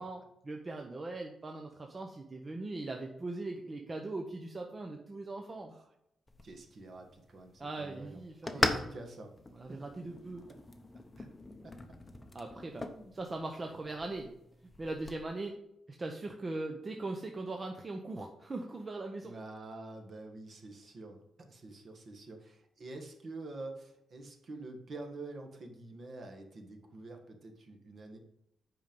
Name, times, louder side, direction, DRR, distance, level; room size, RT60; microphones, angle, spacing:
voice 1, 0.0-5.7 7.6-8.9 9.5-10.4 12.3-12.8 13.1-14.3 14.8-15.5 15.9-19.3, right 2 dB, 25° right, 2 dB, 0.8 m, -40 dB
sound 1, 6.3-15.2, left 2 dB, 15° left, 0.8 m, -40 dB
voice 2, 6.4-9.4 9.7-9.8 11.2-11.3 11.6-11.7 12.8-13.2 19.2-21.2 21.5-28.2, right 2 dB, 45° right, 4 dB, 1.5 m, -47 dB
8.6 x 5.4 x 5.2 m, 0.80 s
wide cardioid pair, 160°, 0 cm